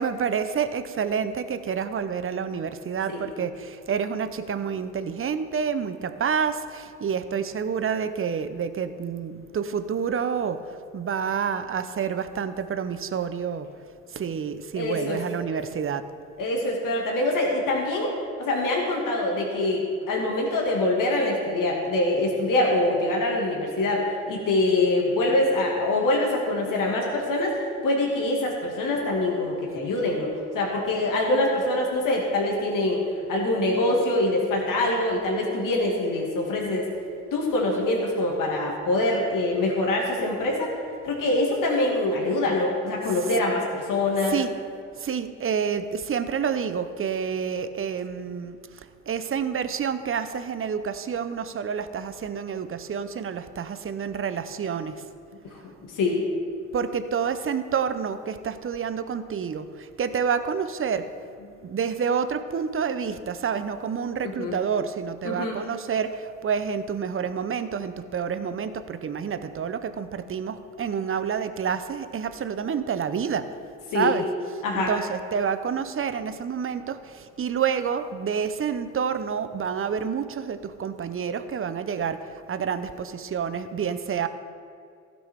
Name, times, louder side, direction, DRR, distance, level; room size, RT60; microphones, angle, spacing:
voice 1, 0.0-10.6 10.9-13.7 14.1-16.0 44.3-44.5 45.0-48.6 49.1-54.9 56.7-61.1 61.6-73.5 73.9-74.3 74.7-84.3, right 7 dB, 35° right, 11 dB, 0.8 m, -28 dB
voice 2, 14.8-15.2 15.5-15.6 16.4-18.1 18.4-19.8 20.1-30.3 30.5-33.0 33.3-36.9 37.3-40.7 41.0-44.4 55.5-55.6 55.9-56.2 64.2-64.6 65.2-65.6 73.9-74.1 74.6-74.9, left 2 dB, 60° left, -1 dB, 2.1 m, -24 dB
15.5 x 6.1 x 3.6 m, 2.4 s
hypercardioid pair, 50°, 36 cm